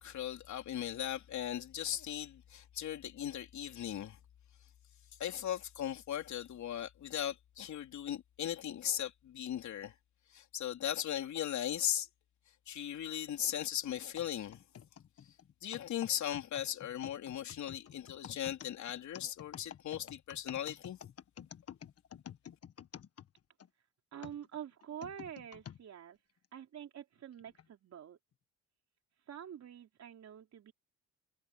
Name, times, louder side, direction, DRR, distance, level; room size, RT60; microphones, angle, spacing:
voice 1, 0.0-4.2 5.2-9.9 10.3-12.1 12.7-14.6 15.6-21.0, left 10 dB, 70° left, 3.6 m, -38 dB
sound 1, 14.2-23.7 24.2-25.8 26.4-26.5 27.4-27.6, left 9 dB, 55° left, 1.5 m, -50 dB
voice 2, 24.1-26.2 26.5-28.2 29.3-30.7, right 9 dB, 60° right, 3.7 m, -47 dB
cardioid pair, 90°, 30 cm